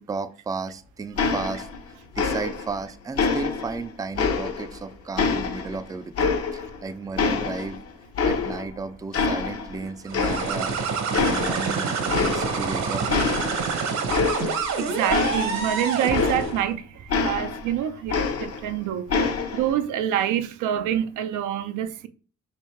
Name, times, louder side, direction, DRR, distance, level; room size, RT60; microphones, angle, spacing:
voice 1, 0.0-1.7 2.2-7.8 8.2-10.7 11.1-13.0, right 4 dB, 10° right, 0.3 m, -34 dB
sound 1, 1.2-1.9 2.2-2.8 3.2-4.8 5.2-6.8 7.2-8.8 9.1-9.8 10.1-10.8 11.1-11.7 12.1-12.7 13.1-16.7 17.1-18.7 19.1-19.7, left 5 dB, 55° left, 0.8 m, -26 dB
sound 2, 10.1-16.6, right 5 dB, 65° right, 1.0 m, -27 dB
voice 2, 14.8-19.2 19.5-22.1, right 10 dB, 85° right, 0.5 m, -27 dB
3.4 x 2.7 x 4.3 m
cardioid pair, 90°, 30 cm